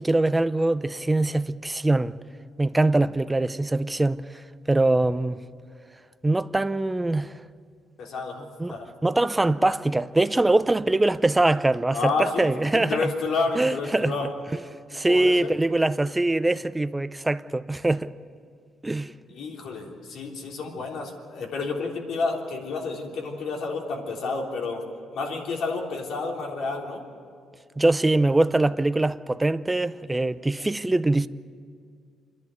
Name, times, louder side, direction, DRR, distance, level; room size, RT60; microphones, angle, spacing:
voice 1, 0.0-2.2 2.6-4.2 4.7-5.4 6.2-7.3 8.6-8.7 9.0-13.1 13.5-14.1 14.5-14.6 14.9-18.1 18.8-19.1 27.8-31.3, right 2 dB, 15° right, 0.6 m, -23 dB
voice 2, 8.0-8.9 11.9-14.3 15.1-15.5 19.3-24.8 25.1-27.0, left 4 dB, 75° left, 3.5 m, -30 dB
28.0 x 11.0 x 9.2 m
cardioid pair, 90°, 0 cm